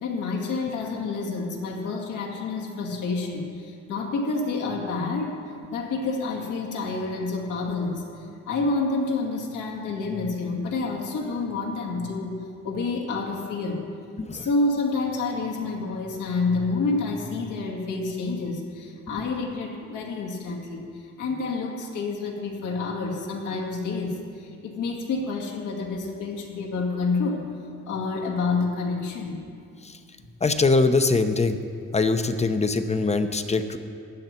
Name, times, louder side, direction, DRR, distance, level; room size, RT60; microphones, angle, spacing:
voice 1, 0.0-5.4 5.7-8.0 8.5-12.4 12.6-13.8 14.3-20.9 21.2-27.4 27.9-29.5, left 3 dB, 80° left, 0 dB, 2.2 m, -28 dB
voice 2, 30.4-31.6 31.9-33.8, left 3 dB, 20° left, 9 dB, 0.8 m, -22 dB
15.5 x 9.6 x 4.5 m, 2.3 s
cardioid pair, 90°, 30 cm